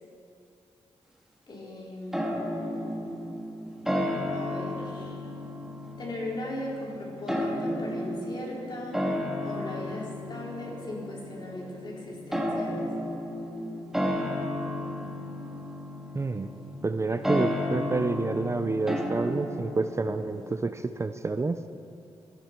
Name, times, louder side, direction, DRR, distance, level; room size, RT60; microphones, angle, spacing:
voice 1, 1.5-3.1 4.3-5.2 6.0-9.0 9.4-12.9, left 1 dB, 40° left, -4 dB, 4.3 m, -38 dB
sound 1, 2.1-20.6, left 1 dB, 5° right, 1.9 m, -33 dB
voice 2, 16.1-16.5 16.8-21.7, right 3 dB, 25° right, 9 dB, 0.5 m, -29 dB
16.0 x 15.0 x 4.6 m, 2.5 s
cardioid pair, 90°, 11 cm